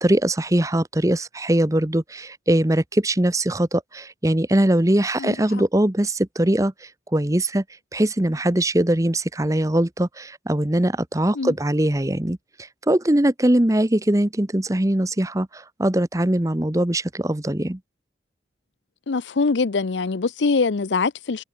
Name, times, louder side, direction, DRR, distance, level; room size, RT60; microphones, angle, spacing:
voice 1, 0.0-7.6 7.9-12.4 12.9-17.8, right 1 dB, 20° right, 0.9 m, -21 dB
voice 2, 5.2-5.6 11.3-11.5 19.1-21.4, left 4 dB, 85° left, 0.7 m, -23 dB
head